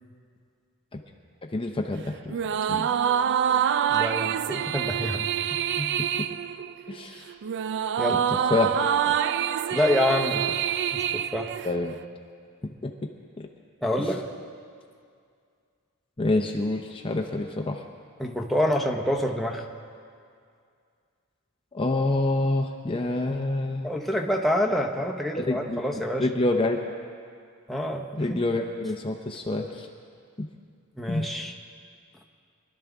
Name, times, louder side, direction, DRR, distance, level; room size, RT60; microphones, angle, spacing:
voice 1, 1.5-2.4 2.7-2.9 6.0-6.3 6.9-7.3 8.1-8.2 8.5-9.1 11.6-11.9 12.8-12.9 13.4-13.5 16.2-17.8 21.7-23.9 25.4-25.8 26.2-26.8 28.2-29.9 31.1-31.3, left 2 dB, 25° left, 3 dB, 0.6 m, -27 dB
sound 1, 2.3-12.0, right 9 dB, 55° right, 0.3 m, -26 dB
voice 2, 3.9-5.3 5.8-5.9 8.0-8.3 9.7-10.6 10.9-11.5 13.8-14.2 18.2-19.6 23.8-26.3 27.7-28.4 31.0-31.5, left 1 dB, ahead, 0 dB, 0.9 m, -27 dB
24.0 x 12.0 x 3.6 m, 2.3 s
head